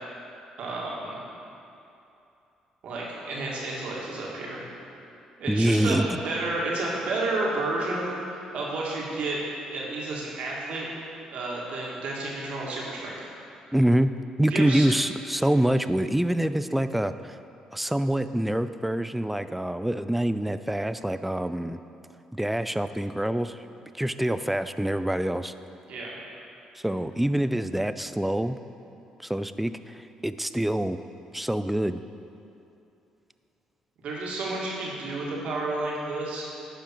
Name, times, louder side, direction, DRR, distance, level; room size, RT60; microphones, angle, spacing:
voice 1, 0.6-1.2 2.8-4.6 5.4-6.0 6.2-9.4 9.7-10.9 11.3-13.2 14.5-14.9 25.9-26.1 34.0-36.7, right 2 dB, 65° right, -4 dB, 2.0 m, -31 dB
voice 2, 5.5-6.2 13.7-17.4 17.7-21.8 22.3-23.6 23.9-25.5 26.8-28.6 29.2-31.0 31.3-32.0, right 1 dB, 5° right, 11 dB, 0.4 m, -26 dB
11.0 x 5.0 x 4.5 m, 2.8 s
hypercardioid pair, 50°, 2 cm